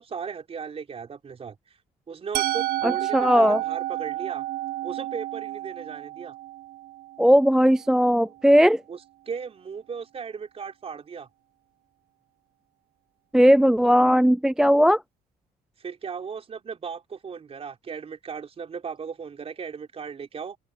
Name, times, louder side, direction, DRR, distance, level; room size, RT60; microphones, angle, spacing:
voice 1, 0.0-1.6 2.1-4.4 4.8-6.3 8.9-9.0 9.3-11.3 15.8-20.6, right 6 dB, 35° right, 4.5 m, -36 dB
Musical instrument, 2.3-8.2, right 15 dB, 65° right, 0.6 m, -31 dB
voice 2, 2.8-3.6 7.2-8.8 13.3-15.0, equal, 5° right, 0.3 m, -18 dB
open air
cardioid pair, 110°, 17 cm